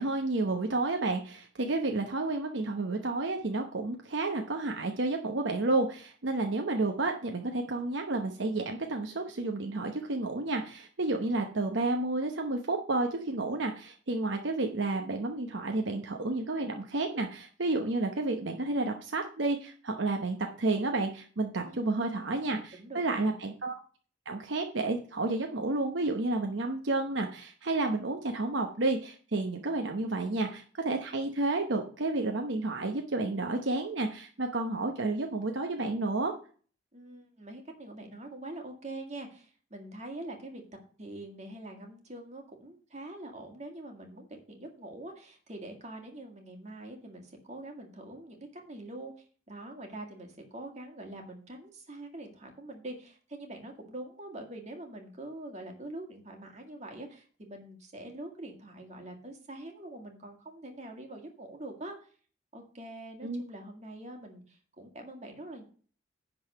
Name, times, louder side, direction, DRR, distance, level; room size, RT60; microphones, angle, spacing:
voice 1, 0.0-23.8 24.3-36.3 63.2-63.4, right 2 dB, 65° right, 3 dB, 0.9 m, -31 dB
voice 2, 21.6-22.0 22.7-23.3 36.9-40.6 41.0-49.1 49.5-62.1 62.5-65.6, right 1 dB, 35° right, 2 dB, 1.9 m, -44 dB
10.5 x 4.0 x 6.5 m, 0.42 s
head